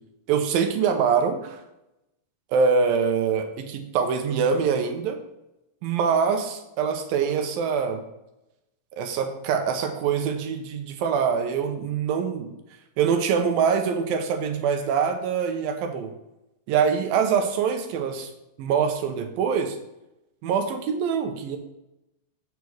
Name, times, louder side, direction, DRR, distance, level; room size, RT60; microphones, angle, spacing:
voice 1, 0.3-1.6 2.5-5.2 5.8-8.0 8.9-12.5 13.0-16.1 16.7-18.3 18.6-19.8 20.4-21.6, right 6 dB, 90° right, 5 dB, 2.7 m, -24 dB
8.3 x 6.7 x 4.7 m, 0.90 s
omnidirectional pair, 4.1 m